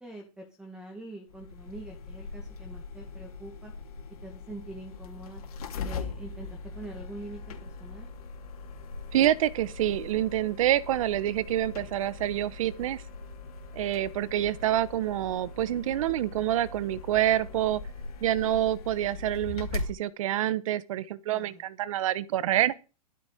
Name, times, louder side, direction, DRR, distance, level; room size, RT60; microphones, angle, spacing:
voice 1, 0.0-3.7 4.2-5.4 5.8-6.5 6.8-8.1 21.3-21.6, right 2 dB, 5° right, 1.9 m, -44 dB
sound 1, 1.3-19.9, left 4 dB, 60° left, 3.5 m, -41 dB
voice 2, 9.1-13.0 13.8-17.8 18.2-22.7, right 12 dB, 55° right, 1.0 m, -27 dB
13.0 x 7.9 x 5.1 m
hypercardioid pair, 160°, 21 cm